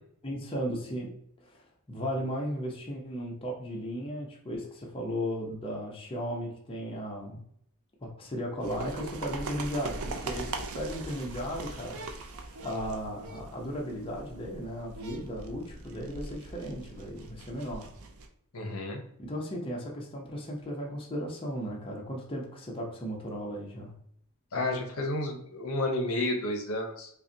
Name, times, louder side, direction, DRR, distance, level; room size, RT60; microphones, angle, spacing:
voice 1, 0.2-1.1 1.4-7.4 8.0-17.9 19.2-23.9, equal, 25° left, -2 dB, 0.7 m, -36 dB
sound 1, 8.6-18.3, right 3 dB, 70° right, 0.5 m, -41 dB
voice 2, 18.5-19.0 24.5-27.1, left 2 dB, 70° left, 3 dB, 0.7 m, -31 dB
5.4 x 2.2 x 2.7 m, 0.69 s
head